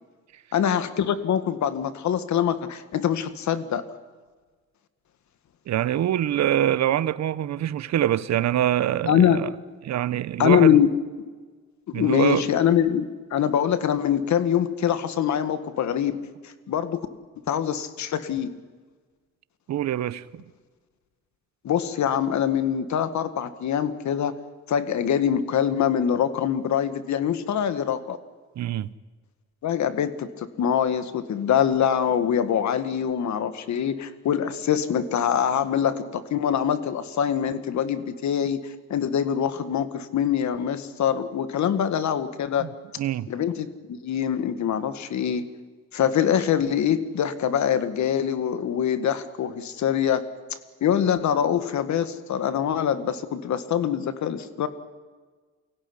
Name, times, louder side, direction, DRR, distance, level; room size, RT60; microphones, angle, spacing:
voice 1, 0.5-3.8 9.1-9.4 10.4-10.9 11.9-16.2 16.7-17.0 17.5-18.5 21.6-24.3 24.7-28.2 29.6-38.6 38.9-42.7 43.3-45.4 45.9-50.2 50.8-54.7, left 9 dB, 65° left, 1.9 m, -24 dB
voice 2, 5.7-9.5 9.8-10.8 11.9-12.5 19.7-20.2 28.6-28.9 42.6-42.7 43.0-43.3, right 11 dB, 65° right, 0.9 m, -24 dB
23.5 x 16.5 x 9.9 m
cardioid pair, 90°, 30 cm